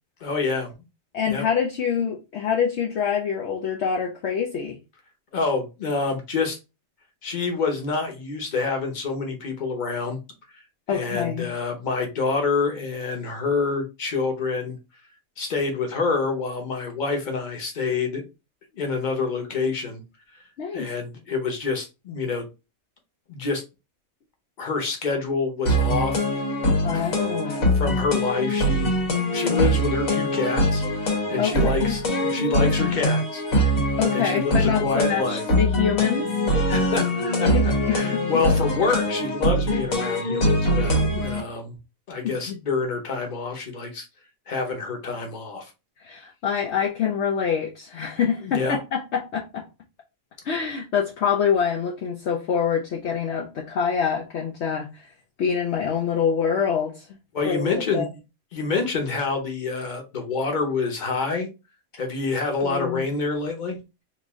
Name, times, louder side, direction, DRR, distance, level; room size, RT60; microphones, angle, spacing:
voice 1, 0.2-0.7 1.2-1.5 5.3-6.6 7.2-10.2 10.5-10.6 10.9-14.8 15.4-18.2 18.7-20.0 20.3-20.4 20.7-22.5 23.3-23.6 24.6-26.2 26.9-27.2 27.5-33.4 34.1-35.4 36.7-41.8 42.1-44.1 44.5-45.7 48.4-48.8 57.3-58.1 58.5-61.5 62.0-63.8, left 4 dB, 40° left, 1.0 m, -27 dB
voice 2, 1.1-4.8 10.9-11.5 20.6-20.9 26.8-27.7 31.4-32.0 34.0-36.3 37.5-38.4 42.2-42.6 46.0-49.7 50.4-55.1 55.4-57.1 57.5-58.1 62.6-63.0, left 7 dB, 65° left, 0.8 m, -26 dB
sound 1, 25.7-41.4, equal, 85° left, 1.5 m, -23 dB
3.1 x 2.5 x 3.5 m
omnidirectional pair, 1.4 m